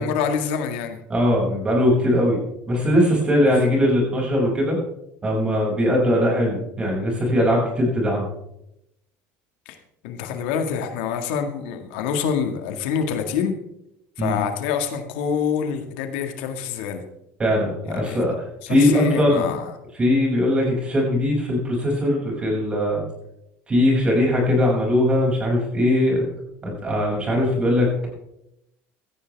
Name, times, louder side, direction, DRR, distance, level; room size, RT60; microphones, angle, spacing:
voice 1, 0.0-1.0 3.4-3.5 9.7-9.8 10.0-13.6 14.2-17.0 17.8-18.2 18.6-19.7, left 7 dB, 90° left, 5 dB, 2.0 m, -26 dB
voice 2, 1.1-2.4 2.7-4.8 5.2-8.3 14.2-14.4 17.4-18.3 18.7-19.5 19.9-23.0 23.7-26.2 26.6-28.1, left 1 dB, 20° right, -2 dB, 6.6 m, -20 dB
17.0 x 14.5 x 3.5 m, 0.82 s
cardioid pair, 150°, 6 cm